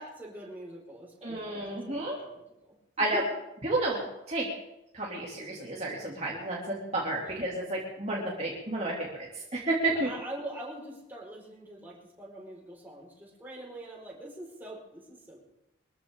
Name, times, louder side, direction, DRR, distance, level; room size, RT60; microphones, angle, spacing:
voice 1, 0.0-3.2 9.9-15.4, right 1 dB, 10° right, -4 dB, 5.0 m, -44 dB
voice 2, 1.2-2.2 3.0-3.2 3.6-4.5 4.9-9.1 9.5-10.1, right 2 dB, 35° right, -4 dB, 2.8 m, -31 dB
24.0 x 14.5 x 3.8 m, 0.89 s
head